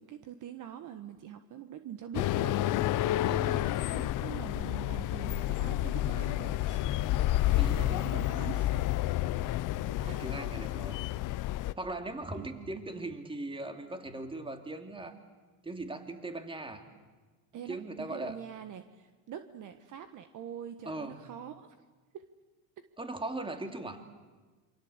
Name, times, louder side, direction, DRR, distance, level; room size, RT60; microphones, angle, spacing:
voice 1, 0.0-2.6 3.2-6.9 7.4-8.7 9.9-10.2 12.4-12.5 17.5-21.7 22.1-22.2, right 10 dB, 40° right, 9 dB, 1.5 m, -44 dB
sound 1, 2.1-11.7, left 14 dB, 45° left, 0.9 m, -30 dB
voice 2, 3.2-3.6 7.6-7.9 9.9-11.0 11.8-15.2 15.6-16.8 17.7-18.4 20.8-21.2 23.0-24.0, right 2 dB, 10° right, 6 dB, 2.9 m, -39 dB
28.0 x 24.0 x 8.2 m, 1.3 s
supercardioid pair, 110°, 45 cm